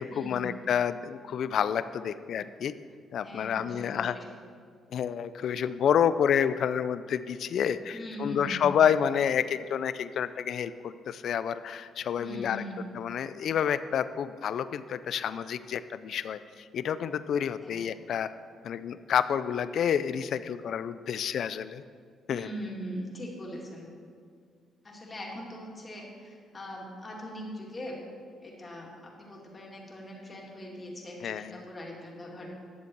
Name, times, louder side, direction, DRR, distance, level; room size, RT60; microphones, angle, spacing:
voice 1, 0.0-2.7 3.1-4.2 4.9-12.6 13.0-18.3 18.6-21.8 22.3-22.5 31.2-31.6, left 8 dB, 65° left, 14 dB, 0.3 m, -29 dB
voice 2, 3.2-4.2 7.9-8.8 12.2-12.8 17.6-17.8 22.3-23.9 24.8-28.0 28.4-32.5, equal, 30° left, -2 dB, 2.3 m, -41 dB
11.0 x 7.1 x 4.6 m, 2.1 s
cardioid pair, 90°, 0 cm